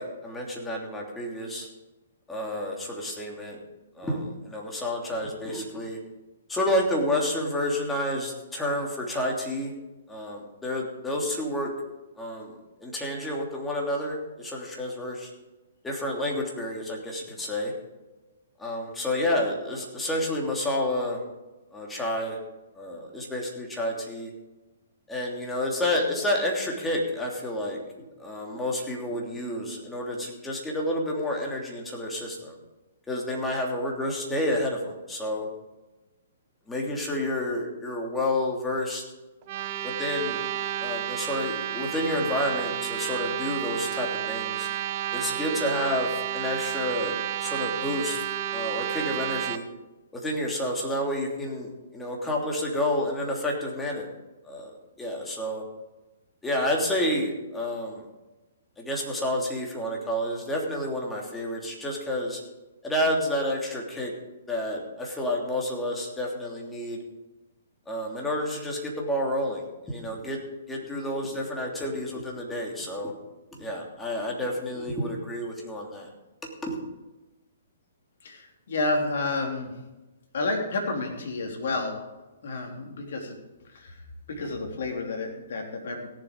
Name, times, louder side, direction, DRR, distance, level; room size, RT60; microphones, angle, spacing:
voice 1, 0.0-1.7 2.3-3.6 3.9-6.0 6.5-9.7 10.1-11.7 12.2-15.3 15.8-17.7 18.6-21.2 21.7-22.4 22.7-24.3 25.1-32.6 33.1-35.5 36.7-39.0 39.8-40.4 40.8-44.7 45.1-48.2 48.5-49.6 50.1-54.1 54.4-54.7 55.0-55.6 56.4-58.0 58.8-62.4 62.8-64.1 64.5-67.0 67.9-70.4 70.7-73.1 73.5-76.1 76.4-76.8, left 1 dB, 10° left, -1 dB, 3.0 m, -30 dB
sound 1, 39.4-49.6, right 11 dB, 45° right, 0.9 m, -31 dB
voice 2, 78.2-79.7 80.3-82.0 82.4-83.4 83.7-84.0 84.3-86.1, left 2 dB, 65° left, 2 dB, 3.2 m, -30 dB
17.0 x 7.5 x 5.3 m, 1.1 s
figure-of-eight pair, 125°, 0 cm